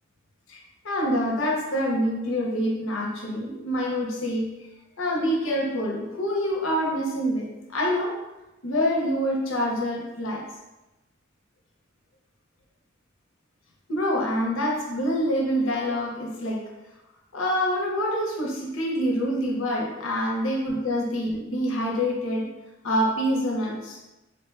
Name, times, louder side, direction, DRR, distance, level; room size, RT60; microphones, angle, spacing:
voice 1, 0.8-4.5 5.0-8.2 8.6-10.5 13.9-16.7 17.3-22.5 22.8-24.0, equal, 70° left, -1 dB, 0.7 m, -26 dB
3.0 x 2.1 x 3.1 m, 0.99 s
head